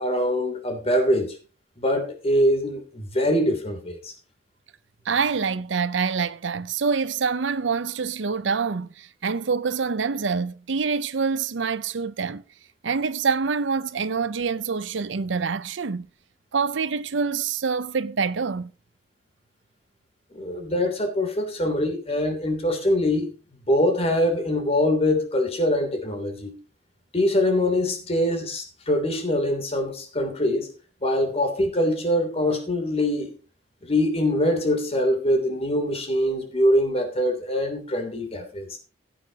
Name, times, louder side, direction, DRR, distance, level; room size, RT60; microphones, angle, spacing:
voice 1, 0.0-1.4 1.8-4.1 20.3-23.3 23.7-26.6 27.1-30.7 31.0-33.4 33.8-38.8, left 1 dB, 35° left, 3.0 m, -23 dB
voice 2, 5.1-12.4 12.8-16.1 16.5-18.7, right 5 dB, 85° right, 0.6 m, -26 dB
16.5 x 8.9 x 2.9 m
head